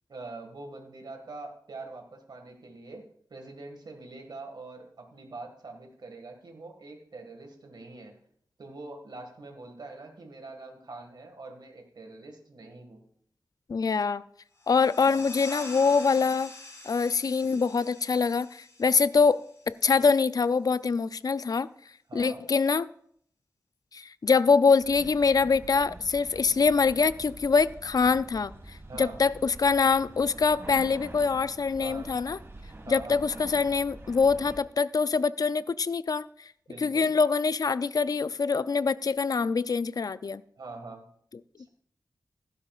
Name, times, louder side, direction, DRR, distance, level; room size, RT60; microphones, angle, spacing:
voice 1, 0.1-3.0 3.3-8.1 8.6-13.0 15.0-15.2 22.1-22.5 28.9-29.2 31.8-32.1 32.9-33.2 36.7-37.1 40.6-41.0 41.6-41.7, right 3 dB, 75° right, 1.9 m, -44 dB
voice 2, 13.7-14.2 14.7-16.5 16.9-21.7 22.1-22.9 23.9-28.5 29.0-32.4 32.9-36.3 36.8-40.4, left 5 dB, 60° left, 0.4 m, -24 dB
sound 1, 14.6-19.9, left 2 dB, 40° left, 5.6 m, -45 dB
sound 2, 24.8-34.6, right 2 dB, 35° right, 2.0 m, -46 dB
15.0 x 12.5 x 2.5 m
wide cardioid pair, 80°, 7 cm